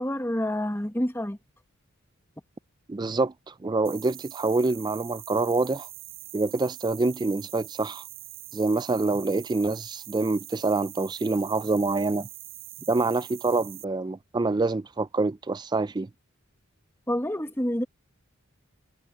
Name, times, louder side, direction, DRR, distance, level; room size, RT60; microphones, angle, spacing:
voice 1, 0.0-1.4 17.1-17.8, left 1 dB, 10° left, 1.6 m, -28 dB
voice 2, 2.9-5.9 6.3-8.0 8.5-12.3 12.9-16.1, right 3 dB, 20° right, 0.4 m, -26 dB
sound 1, 3.8-13.8, right 17 dB, 65° right, 7.7 m, -43 dB
head